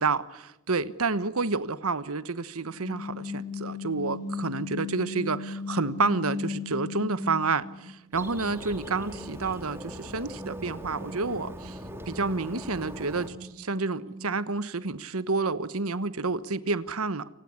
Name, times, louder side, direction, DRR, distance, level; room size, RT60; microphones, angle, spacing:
voice 1, 0.0-11.8 12.1-17.3, right 3 dB, 85° right, 1.2 m, -29 dB
sound 1, 2.6-7.8 8.2-14.4, left 4 dB, 35° right, 6.2 m, -39 dB
Bird, 8.1-13.3, equal, 10° right, 2.9 m, -41 dB
29.5 x 19.5 x 9.7 m
head